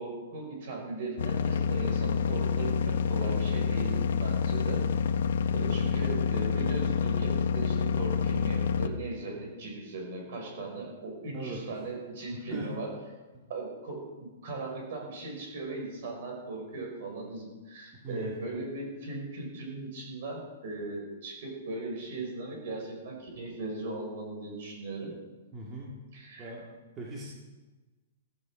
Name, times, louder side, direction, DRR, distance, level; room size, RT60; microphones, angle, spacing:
voice 1, 0.0-4.9 5.5-12.9 13.5-25.1 26.1-26.5, right 2 dB, 45° right, 0 dB, 5.7 m, -38 dB
sound 1, 1.2-8.9, left 6 dB, 65° left, 1.0 m, -28 dB
voice 2, 12.3-12.7 13.3-13.4 17.9-18.3 25.5-26.0 26.4-26.7 27.0-27.3, right 2 dB, 15° right, -4 dB, 1.9 m, -40 dB
15.0 x 15.0 x 5.0 m, 1.2 s
hypercardioid pair, 175°, 0 cm